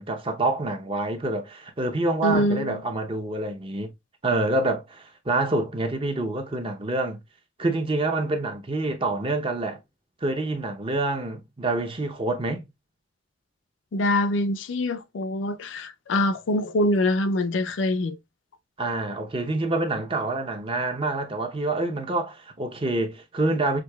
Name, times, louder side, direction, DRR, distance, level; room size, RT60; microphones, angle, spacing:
voice 1, 0.0-3.9 4.2-7.2 7.6-9.8 10.2-12.6 18.8-23.8, right 2 dB, 30° right, 0.7 m, -27 dB
voice 2, 2.2-2.8 13.9-18.2, left 1 dB, 90° left, 0.4 m, -24 dB
6.2 x 2.8 x 2.2 m
head